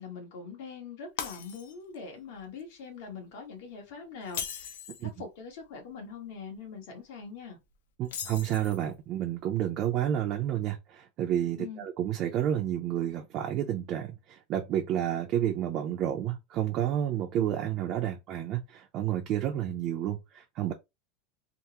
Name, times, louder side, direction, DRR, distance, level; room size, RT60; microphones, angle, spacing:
voice 1, 0.0-7.6 11.6-11.8, left 5 dB, 60° left, 1.2 m, -43 dB
Shatter, 1.2-2.0 2.4-2.6 4.2-5.1 8.0-8.9, left 8 dB, 85° left, 0.6 m, -38 dB
voice 2, 8.0-20.7, right 11 dB, 35° right, 0.5 m, -30 dB
3.4 x 2.0 x 2.8 m
supercardioid pair, 160°, 0 cm